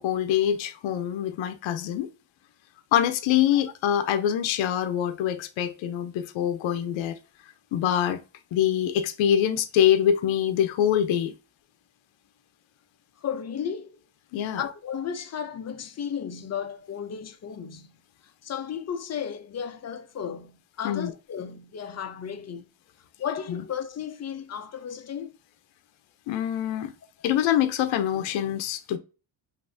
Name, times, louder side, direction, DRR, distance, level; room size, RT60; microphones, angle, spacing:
voice 1, 0.0-2.1 2.9-7.2 7.7-8.2 8.5-11.3 14.3-14.6 20.8-21.1 23.5-23.6 26.3-26.9 27.2-29.0, left 10 dB, 70° left, 0.7 m, -24 dB
voice 2, 13.2-14.0 14.6-17.9 18.4-22.7 23.2-25.3, left 8 dB, 35° left, 0.6 m, -34 dB
5.5 x 2.7 x 2.6 m
cardioid pair, 125°, 47 cm